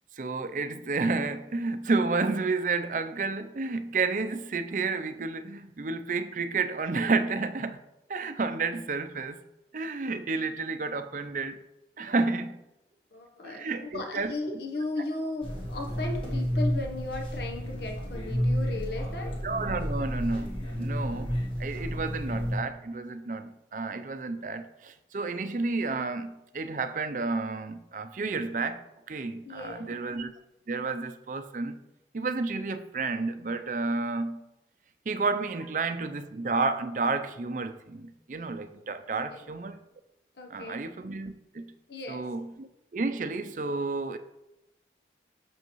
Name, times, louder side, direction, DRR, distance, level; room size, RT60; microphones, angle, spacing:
voice 1, 0.2-7.8 8.1-9.4 9.7-11.6 12.0-12.6 13.4-14.6 19.4-21.3 21.6-28.8 29.1-30.3 30.7-31.8 32.1-34.4 35.1-39.8 40.5-41.7 42.1-44.2, right 3 dB, 45° right, 10 dB, 0.5 m, -31 dB
voice 2, 13.1-19.4 29.4-30.0 39.3-39.5 40.4-40.8 41.9-42.2, left 2 dB, 70° left, 2 dB, 0.9 m, -36 dB
sound 1, 15.4-22.6, equal, 30° left, 1.6 m, -31 dB
8.1 x 6.3 x 3.1 m, 0.91 s
head